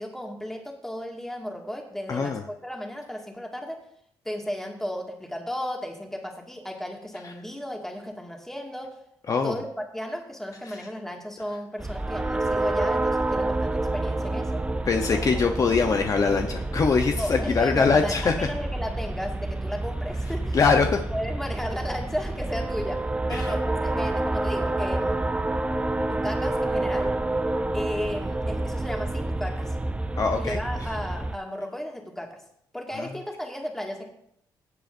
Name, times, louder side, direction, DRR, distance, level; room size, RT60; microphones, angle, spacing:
voice 1, 0.0-3.8 4.2-9.0 9.4-14.6 15.1-15.4 17.1-20.6 21.1-25.3 26.1-27.1 27.7-29.8 30.3-32.4 32.7-34.1, equal, 5° left, 1 dB, 2.0 m, -34 dB
voice 2, 2.1-2.4 7.2-7.3 9.3-9.5 10.6-10.9 14.9-18.3 20.5-21.0 23.3-23.5 30.2-30.6 33.0-33.1, left 5 dB, 45° left, 4 dB, 0.8 m, -23 dB
sound 1, 11.8-31.4, right 2 dB, 15° right, 0.6 m, -28 dB
17.5 x 7.9 x 2.6 m, 0.72 s
cardioid pair, 90°, 8 cm